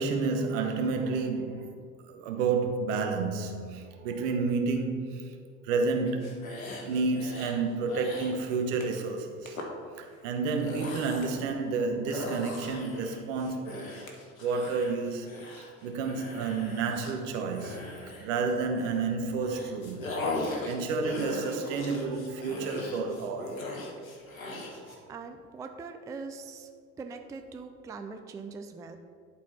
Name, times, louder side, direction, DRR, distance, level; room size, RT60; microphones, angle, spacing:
voice 1, 0.0-5.3 5.6-9.6 10.0-13.9 14.4-15.3 15.8-23.5 24.9-25.0, right 4 dB, 60° right, 1.0 m, -30 dB
sound 1, 6.1-7.6 7.9-8.4 8.8-9.0 9.5-9.7 10.4-11.5 12.1-19.0 19.4-25.0, left 2 dB, 80° left, 1.1 m, -39 dB
voice 2, 25.1-26.7 27.0-29.0, right 4 dB, 10° right, 0.4 m, -42 dB
11.0 x 4.2 x 4.1 m
figure-of-eight pair, 60°, 40 cm